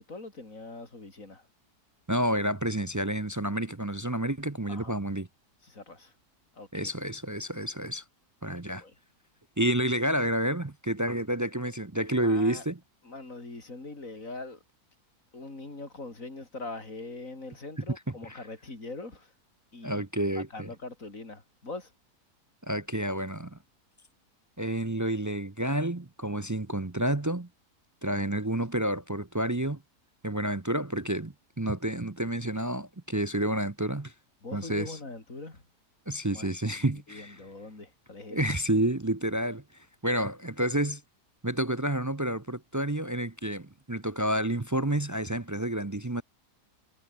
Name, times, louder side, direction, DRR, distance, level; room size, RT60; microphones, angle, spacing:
voice 1, 0.0-1.5 4.7-5.0 5.6-6.1 6.5-6.9 8.8-8.9 12.2-12.7 13.0-14.6 15.3-19.3 19.7-20.1 20.4-21.9 34.4-35.6 36.3-38.4, left 3 dB, 50° left, 5.3 m, -42 dB
voice 2, 2.1-5.3 6.7-8.0 8.4-8.8 9.6-12.8 18.2-18.4 19.8-20.7 22.7-23.6 24.6-27.5 28.0-29.8 30.2-34.1 34.5-35.0 36.1-37.4 38.3-39.6 40.0-41.0 41.4-46.2, right 1 dB, 25° right, 0.4 m, -29 dB
omnidirectional pair, 1.8 m